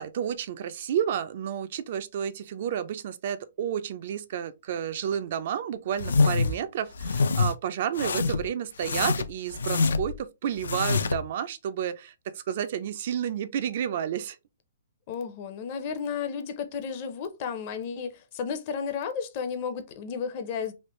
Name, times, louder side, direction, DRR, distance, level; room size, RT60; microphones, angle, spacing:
voice 1, 0.0-14.4, right 9 dB, 45° right, 0.3 m, -31 dB
sound 1, 6.0-6.6 7.0-7.5 7.9-8.5 8.8-10.2 10.6-11.2, left 4 dB, 90° left, 0.4 m, -25 dB
voice 2, 15.1-20.7, left 6 dB, 35° left, 0.5 m, -33 dB
3.1 x 2.5 x 3.0 m
hypercardioid pair, 160°, 0 cm